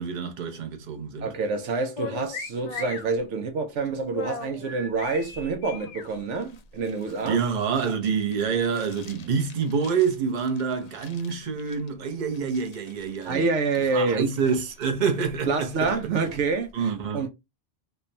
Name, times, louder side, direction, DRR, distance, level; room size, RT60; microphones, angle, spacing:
voice 1, 0.0-1.3 7.2-13.5 13.9-15.9 16.7-17.3, right 6 dB, 45° right, 0.8 m, -27 dB
voice 2, 1.2-7.4 13.3-14.3 15.5-17.3, right 4 dB, 75° right, 1.0 m, -27 dB
sound 1, 2.0-16.7, left 3 dB, 60° left, 0.4 m, -44 dB
sound 2, 2.3-3.1 4.6-6.1, left 5 dB, 75° left, 1.1 m, -38 dB
3.3 x 2.2 x 4.0 m
omnidirectional pair, 1.2 m